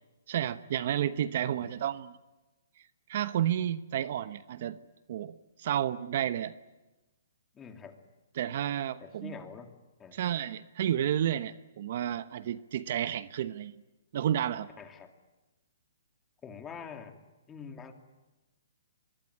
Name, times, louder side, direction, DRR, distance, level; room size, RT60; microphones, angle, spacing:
voice 1, 0.3-2.2 3.1-4.8 5.1-6.5 8.4-9.3 10.1-13.7 14.1-14.7, right 10 dB, 50° right, 13 dB, 1.0 m, -31 dB
voice 2, 7.5-8.0 9.0-9.7 10.0-10.2 14.8-15.1 16.4-17.2 17.5-17.9, left 6 dB, 15° left, 5 dB, 2.7 m, -45 dB
25.5 x 22.5 x 9.7 m, 1.1 s
hypercardioid pair, 155°, 0 cm